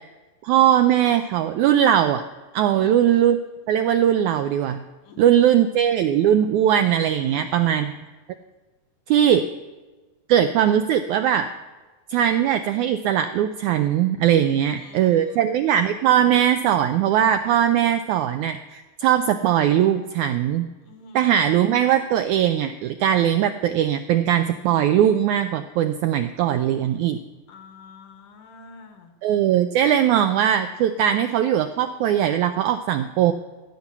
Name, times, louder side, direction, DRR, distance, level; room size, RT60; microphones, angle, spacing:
voice 1, 0.4-2.2 2.5-3.4 3.7-4.8 5.2-7.9 9.1-9.4 10.3-11.5 12.1-20.7 21.1-27.2 29.2-33.3, right 10 dB, 85° right, 9 dB, 1.7 m, -20 dB
voice 2, 2.7-3.0 5.0-5.6 7.2-7.8 14.4-15.5 20.8-21.6 27.5-29.1, left 4 dB, 70° left, 7 dB, 2.7 m, -47 dB
15.5 x 6.0 x 9.8 m, 1.2 s
omnidirectional pair, 4.0 m